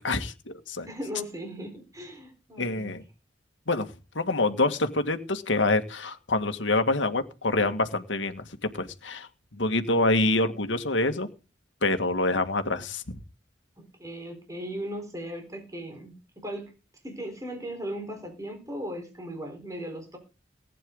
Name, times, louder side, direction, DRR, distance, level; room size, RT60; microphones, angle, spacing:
voice 1, 0.0-0.9 2.6-3.0 3.7-3.9 4.2-11.3 11.8-13.2, left 2 dB, 85° left, 7 dB, 2.0 m, -26 dB
voice 2, 0.8-2.9 13.8-16.7 17.0-20.2, equal, 20° right, 4 dB, 4.4 m, -37 dB
19.0 x 9.9 x 3.9 m, 0.31 s
head